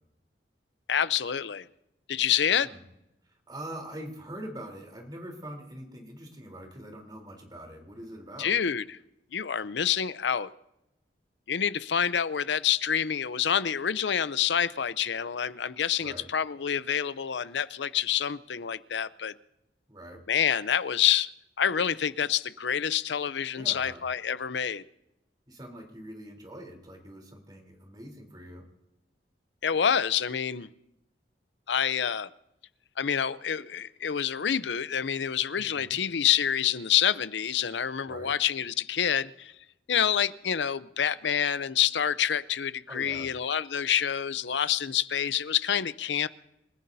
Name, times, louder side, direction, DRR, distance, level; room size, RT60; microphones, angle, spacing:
voice 1, 0.9-1.7 2.1-2.7 8.4-8.8 9.3-10.5 11.5-19.3 20.3-21.3 21.6-24.8 29.6-30.7 31.7-32.3 33.0-39.5 39.9-46.3, left 8 dB, 85° left, 16 dB, 0.6 m, -27 dB
voice 2, 3.2-8.6 16.0-16.3 19.9-20.2 23.5-24.0 25.5-28.6 35.6-36.0 38.1-38.3 42.9-43.3, right 1 dB, 25° right, 2 dB, 3.5 m, -43 dB
28.5 x 15.0 x 2.7 m, 0.87 s
head